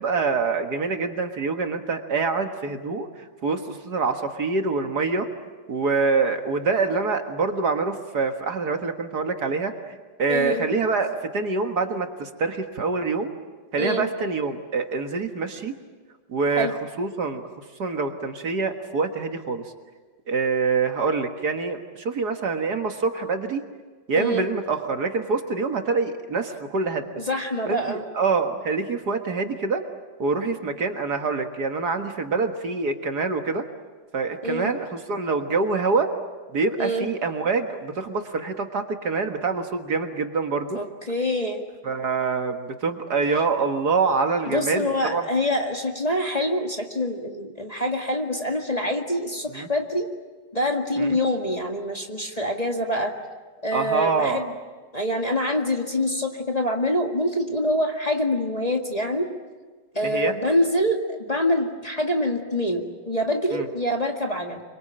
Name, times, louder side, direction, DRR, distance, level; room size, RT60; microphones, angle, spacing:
voice 1, 0.0-3.1 3.4-5.3 5.7-9.7 10.2-13.3 13.7-15.7 16.3-17.5 17.8-19.6 20.3-23.6 24.1-27.0 27.7-29.8 30.2-33.6 34.1-36.1 36.5-40.8 41.8-45.2 49.5-49.7 51.0-51.2 53.7-54.4 60.0-60.3 63.5-63.7, right 4 dB, 55° right, 6 dB, 2.1 m, -25 dB
voice 2, 10.3-10.7 13.8-14.1 16.6-16.7 24.2-24.5 27.2-28.0 34.4-34.7 36.8-37.1 40.7-41.6 44.5-50.1 50.5-53.1 53.6-54.5 54.9-59.3 59.9-64.6, left 1 dB, 20° left, 2 dB, 2.0 m, -25 dB
26.5 x 24.5 x 8.8 m, 1.4 s
omnidirectional pair, 2.1 m